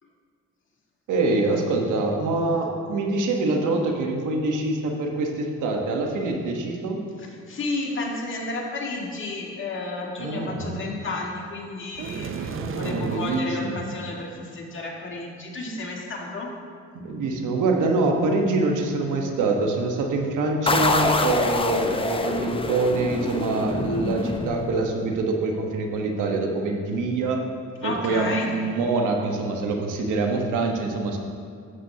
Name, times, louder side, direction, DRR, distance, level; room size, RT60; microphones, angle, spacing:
voice 1, 1.1-7.0 10.2-10.8 12.5-13.8 16.9-27.4 27.8-31.2, right 3 dB, 85° right, 2 dB, 1.2 m, -25 dB
voice 2, 7.2-16.5 27.8-28.5, left 2 dB, 40° left, -1 dB, 1.8 m, -32 dB
sound 1, 11.9-13.5, right 6 dB, 45° right, 0.6 m, -33 dB
sound 2, 20.7-25.2, left 3 dB, 20° left, 0.6 m, -26 dB
13.0 x 7.6 x 2.8 m, 2.4 s
cardioid pair, 90°, 30 cm